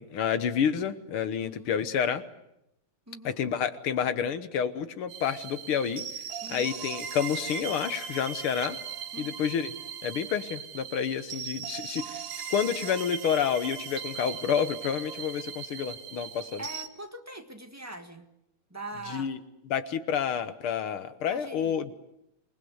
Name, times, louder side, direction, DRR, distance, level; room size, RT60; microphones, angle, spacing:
voice 1, 0.0-2.2 3.2-6.0 6.5-8.8 9.2-9.7 10.0-12.2 12.5-16.6 19.1-19.4 19.7-21.9, left 8 dB, 75° left, 11 dB, 2.0 m, -29 dB
voice 2, 1.4-1.7 3.1-3.4 6.4-6.8 9.1-9.4 16.6-18.3 18.7-19.3 21.3-21.8, right 1 dB, 10° right, 5 dB, 1.5 m, -42 dB
sound 1, 5.1-16.9, right 8 dB, 75° right, 2.2 m, -39 dB
27.0 x 20.0 x 8.0 m, 0.84 s
omnidirectional pair, 2.4 m